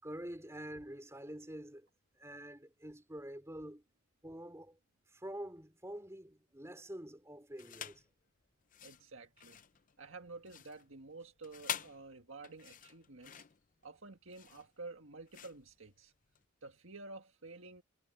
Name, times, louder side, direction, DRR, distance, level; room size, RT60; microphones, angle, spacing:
voice 1, 0.0-1.9 2.2-3.8 4.2-4.8 5.1-8.0, right 1 dB, 10° right, 3.5 m, -47 dB
sound 1, 7.6-8.1 8.6-16.5, left 8 dB, 35° left, 0.6 m, -47 dB
voice 2, 8.8-9.6 10.0-13.4 13.8-16.1 16.6-17.8, right 3 dB, 60° right, 1.9 m, -51 dB
head